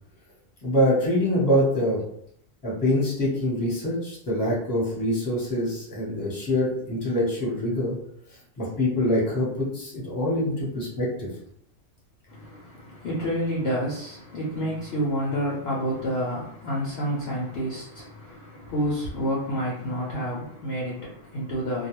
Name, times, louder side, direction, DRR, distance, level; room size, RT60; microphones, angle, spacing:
voice 1, 0.6-2.0 2.6-8.0 8.6-11.3, left 1 dB, 15° left, -6 dB, 0.8 m, -25 dB
voice 2, 12.3-21.9, equal, 60° left, -5 dB, 0.8 m, -29 dB
2.3 x 2.2 x 3.0 m, 0.70 s
omnidirectional pair, 1.4 m